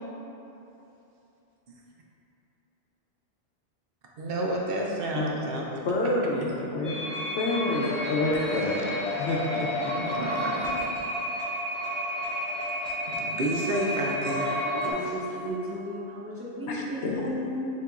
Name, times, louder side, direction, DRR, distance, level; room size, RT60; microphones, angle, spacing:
voice 1, 4.2-5.8 6.5-6.6 8.3-8.4 9.9-10.7 13.1-14.7, right 1 dB, 60° right, -2 dB, 0.7 m, -30 dB
voice 2, 5.8-10.6 16.7-17.2, left 2 dB, 80° left, -1 dB, 0.9 m, -29 dB
sound 1, 6.8-14.9, equal, 45° right, 1.4 m, -31 dB
voice 3, 14.5-17.7, equal, 15° right, -7 dB, 0.5 m, -35 dB
6.6 x 2.9 x 2.4 m, 3.0 s
omnidirectional pair, 1.2 m